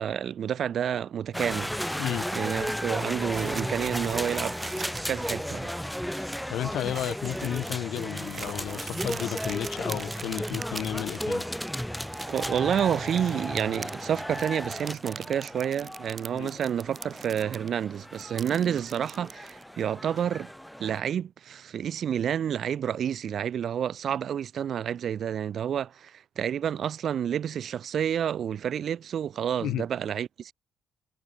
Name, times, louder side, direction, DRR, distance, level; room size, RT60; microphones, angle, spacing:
voice 1, 0.0-1.7 2.3-4.6 5.1-5.7 12.2-20.5 20.8-30.5, right 9 dB, 60° right, 0.5 m, -29 dB
sound 1, 1.3-21.0, equal, ahead, 0.4 m, -34 dB
sound 2, 3.3-5.2 5.5-5.6 6.0-6.3 6.8-11.4 11.6-17.7 17.9-19.6, right 5 dB, 40° right, 1.6 m, -42 dB
voice 2, 6.1-11.5 16.3-16.5 29.6-29.9, left 13 dB, 80° left, 0.5 m, -33 dB
cardioid pair, 90°, 0 cm